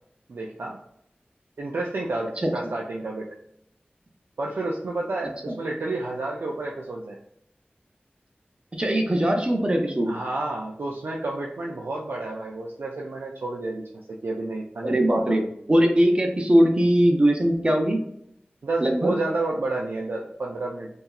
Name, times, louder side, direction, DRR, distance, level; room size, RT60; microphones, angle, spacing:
voice 1, 0.3-0.8 1.6-3.3 4.4-7.2 10.1-15.5 18.6-20.9, right 2 dB, 85° right, -2 dB, 0.3 m, -30 dB
voice 2, 8.8-10.2 14.8-15.4 15.7-18.0 18.8-19.1, right 1 dB, 30° right, 2 dB, 0.5 m, -20 dB
2.8 x 2.3 x 2.3 m, 0.73 s
wide cardioid pair, 70°, 4 cm